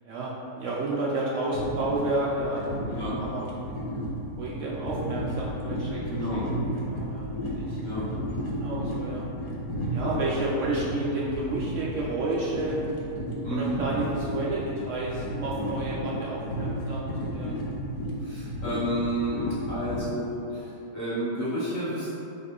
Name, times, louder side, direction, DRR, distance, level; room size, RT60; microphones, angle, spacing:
voice 1, 0.0-2.9 3.2-3.5 4.4-6.0 6.3-7.3 7.5-7.8 8.5-9.3 9.9-12.8 13.5-17.5, right 2 dB, 70° right, -6 dB, 0.7 m, -31 dB
sound 1, 1.5-20.0, equal, 75° left, 1.2 m, -33 dB
voice 2, 6.1-6.4 7.8-8.0 13.4-13.9 18.2-22.1, equal, 25° left, -12 dB, 1.6 m, -31 dB
3.6 x 3.0 x 3.8 m, 2.8 s
omnidirectional pair, 1.8 m